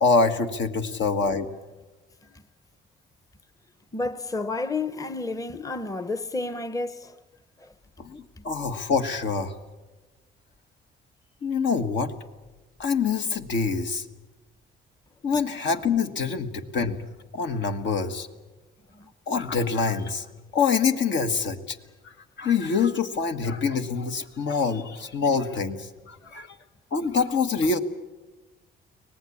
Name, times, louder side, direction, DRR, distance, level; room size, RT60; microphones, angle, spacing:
voice 1, 0.0-1.4 8.0-9.5 11.4-12.1 12.8-14.0 15.2-17.0 17.3-18.3 19.3-20.2 20.5-21.8 22.0-26.6 26.9-27.8, left 5 dB, 65° left, 1.5 m, -25 dB
voice 2, 0.7-1.2 2.2-2.4 3.9-7.2 7.6-7.7 8.4-8.5 18.9-19.1 26.2-26.4, left 3 dB, 15° left, 0.9 m, -32 dB
24.0 x 18.5 x 8.5 m
cardioid pair, 90°, 20 cm